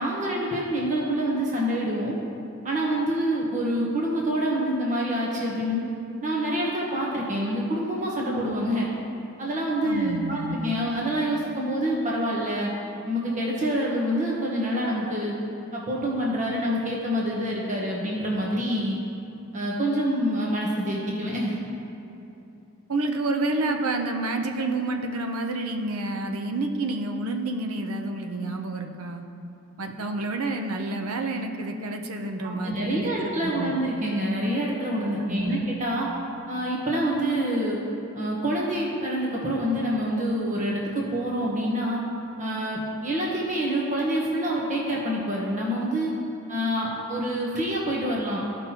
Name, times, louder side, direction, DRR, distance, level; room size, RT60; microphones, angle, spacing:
voice 1, 0.0-2.2 2.6-5.8 6.2-8.9 9.4-12.7 13.0-15.3 15.7-19.0 19.5-21.6 32.4-36.1 36.5-37.8 38.1-42.0 42.4-46.1 46.5-48.4, equal, 35° right, -4 dB, 1.1 m, -26 dB
voice 2, 9.8-10.6 22.9-29.2 29.8-33.7 35.2-35.6, right 2 dB, 85° right, 4 dB, 0.7 m, -29 dB
14.5 x 5.4 x 2.9 m, 2.8 s
head